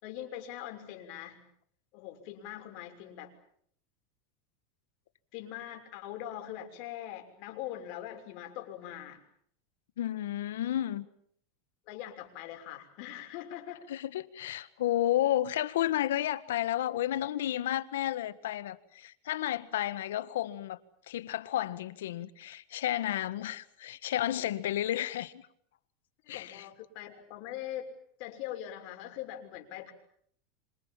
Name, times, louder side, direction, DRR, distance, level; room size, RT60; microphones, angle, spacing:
voice 1, 0.0-1.4 1.9-3.3 5.3-9.2 11.9-13.8 26.2-27.9 28.2-29.9, left 12 dB, 60° left, 6.2 m, -42 dB
voice 2, 10.0-11.0 13.9-20.8 21.1-25.4 26.3-26.7, left 12 dB, 85° left, 1.7 m, -32 dB
26.5 x 26.0 x 7.4 m
supercardioid pair, 125°, 0 cm